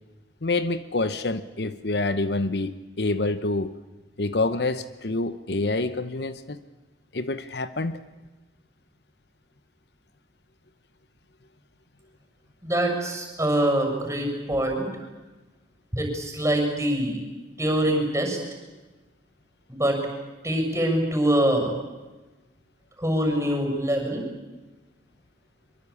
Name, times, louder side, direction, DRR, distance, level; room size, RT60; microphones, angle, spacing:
voice 1, 0.4-3.7 4.2-6.6 7.1-8.0, left 2 dB, 65° left, 12 dB, 1.0 m, -27 dB
voice 2, 12.6-14.9 15.9-17.2 17.6-18.4 19.7-20.0 20.4-21.7 23.0-24.2, right 1 dB, 15° right, 3 dB, 7.1 m, -24 dB
25.0 x 23.5 x 8.6 m, 1.2 s
head